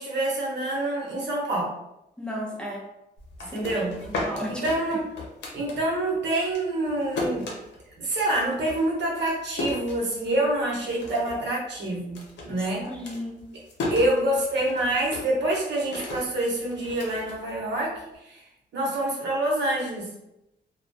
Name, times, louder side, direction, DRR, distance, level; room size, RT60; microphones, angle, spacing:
voice 1, 0.0-1.7 3.5-4.0 4.5-5.1 5.5-7.5 8.0-12.9 13.9-17.9 18.2-18.4 18.7-20.1, right 1 dB, 80° right, -3 dB, 0.8 m, -26 dB
voice 2, 2.2-2.9 3.5-4.6 4.9-5.0 12.9-13.5, equal, 5° left, -4 dB, 0.6 m, -35 dB
sound 1, 3.2-6.1 6.4-10.5 10.9-11.5 11.7-18.0, left 2 dB, 85° left, 0.7 m, -35 dB
2.2 x 2.2 x 2.6 m, 0.86 s
cardioid pair, 95°, 18 cm